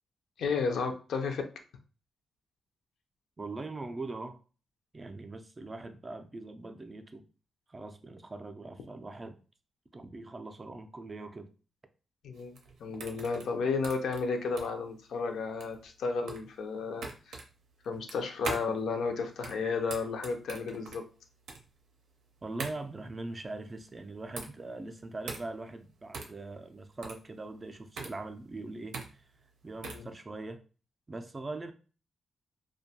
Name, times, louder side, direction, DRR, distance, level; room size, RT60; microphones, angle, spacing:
voice 1, 0.4-1.4 12.2-17.4 17.8-21.0 29.8-30.1, left 4 dB, 80° left, 0.4 m, -33 dB
voice 2, 3.4-4.4 4.9-7.2 7.7-9.4 9.9-11.5 22.4-29.2 29.6-30.6 31.1-31.7, right 2 dB, 25° right, 0.3 m, -41 dB
sound 1, 12.3-30.1, right 4 dB, 90° right, 0.5 m, -43 dB
2.5 x 2.2 x 2.7 m
cardioid pair, 115°, 0 cm